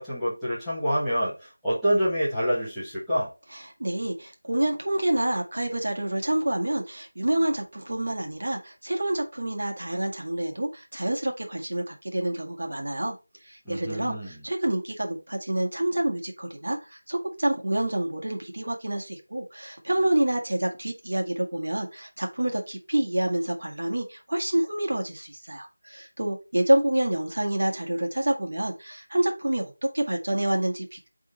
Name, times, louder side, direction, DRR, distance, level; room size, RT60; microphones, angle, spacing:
voice 1, 0.0-1.3 1.6-3.3 13.6-14.3, equal, ahead, -17 dB, 1.2 m, -26 dB
voice 2, 3.5-13.2 13.4-31.1, right 1 dB, 55° right, 2 dB, 1.9 m, -27 dB
7.4 x 3.7 x 4.1 m, 0.29 s
figure-of-eight pair, 180°, 0 cm